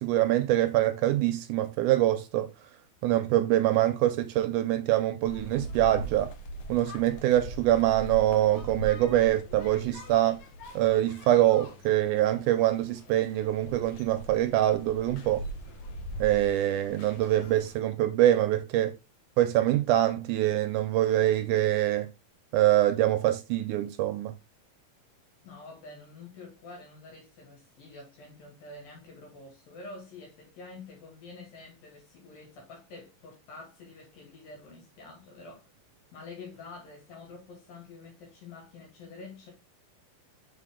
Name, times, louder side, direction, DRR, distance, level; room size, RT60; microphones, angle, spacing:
voice 1, 0.0-2.5 3.0-6.3 6.7-10.4 10.8-15.4 16.2-18.9 19.4-22.1 22.5-24.3, right 13 dB, 80° right, 1.9 m, -24 dB
sound 1, 5.2-17.8, right 1 dB, 65° left, 2.3 m, -42 dB
voice 2, 25.4-35.7 36.1-39.5, left 3 dB, 85° left, 4.2 m, -47 dB
7.4 x 4.3 x 3.6 m
omnidirectional pair, 4.0 m